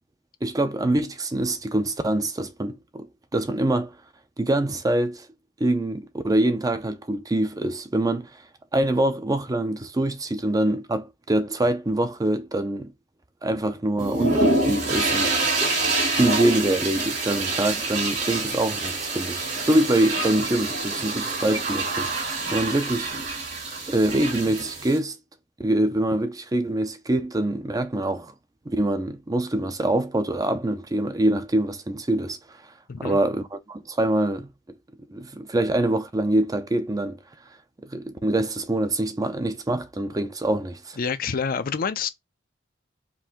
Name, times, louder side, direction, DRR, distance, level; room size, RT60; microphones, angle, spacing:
voice 1, 0.4-3.1 3.3-3.9 4.4-5.3 5.6-8.4 8.7-12.9 13.4-15.3 16.1-23.1 23.9-25.2 25.6-28.3 28.7-32.6 33.0-34.5 35.1-37.2 37.8-41.0, right 1 dB, 20° right, 0.5 m, -24 dB
sound 1, 14.0-25.0, right 2 dB, 60° right, 2.3 m, -26 dB
voice 2, 41.0-42.1, left 6 dB, 50° left, 0.5 m, -27 dB
4.5 x 2.6 x 3.6 m
head